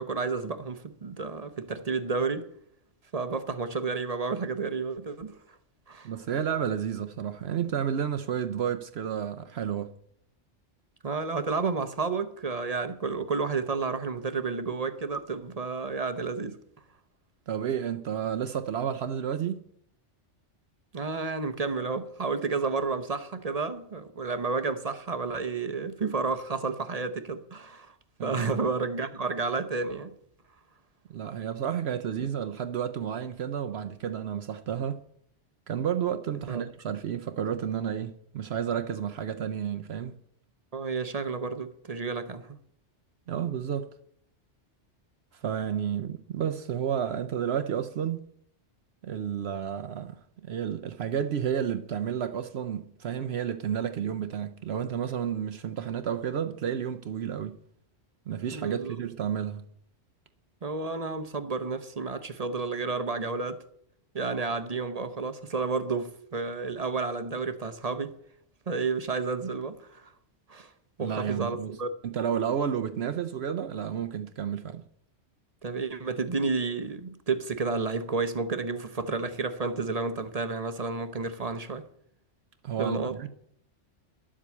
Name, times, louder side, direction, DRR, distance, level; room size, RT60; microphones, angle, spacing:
voice 1, 0.0-2.5 3.1-5.4 5.9-6.1 11.0-16.6 20.9-27.9 28.2-30.1 36.5-36.6 40.7-42.6 58.5-58.9 60.6-63.6 64.1-68.1 68.7-70.1 70.5-70.7 71.0-71.9 75.6-81.9 82.8-83.2, right 4 dB, 40° right, 0.7 m, -31 dB
voice 2, 6.0-9.9 17.5-19.6 28.2-28.5 31.1-35.0 35.7-40.1 43.3-43.9 45.3-48.3 49.0-50.1 50.4-57.6 58.3-59.6 71.0-71.8 72.0-74.8 82.6-83.3, right 8 dB, 65° right, 0.8 m, -31 dB
11.0 x 7.5 x 8.3 m
omnidirectional pair, 1.2 m